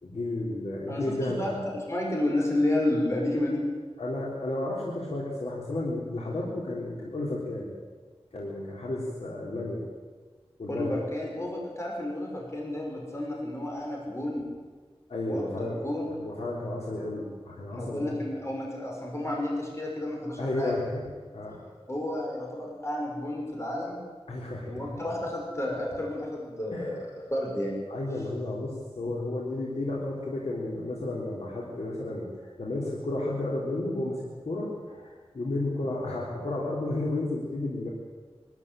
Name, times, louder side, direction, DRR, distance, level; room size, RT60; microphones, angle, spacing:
voice 1, 0.0-1.4 4.0-7.7 8.3-9.8 10.6-11.0 15.1-15.8 16.2-18.0 20.4-21.0 21.3-21.6 24.3-24.8 26.7-26.9 27.9-32.3 32.6-37.9, left 2 dB, 80° left, -4 dB, 3.9 m, -32 dB
voice 2, 0.9-1.6 1.9-3.6 10.7-14.4 15.3-16.1 17.7-20.7 21.9-24.0 24.7-27.7, left 1 dB, 25° left, -2 dB, 5.9 m, -31 dB
21.5 x 13.5 x 9.2 m, 1.4 s
wide cardioid pair, 75°, 11 cm